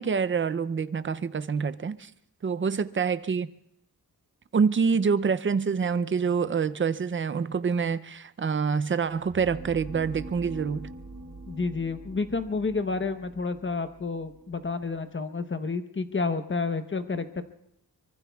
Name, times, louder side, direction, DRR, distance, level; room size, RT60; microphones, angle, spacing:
voice 1, 0.0-2.1 2.4-3.5 4.5-10.9, right 6 dB, 35° right, 0.5 m, -26 dB
sound 1, 9.1-15.0, right 3 dB, 55° right, 5.3 m, -44 dB
voice 2, 11.5-17.4, left 4 dB, 30° left, 0.9 m, -30 dB
24.5 x 24.0 x 2.3 m
wide cardioid pair, 155°, 38 cm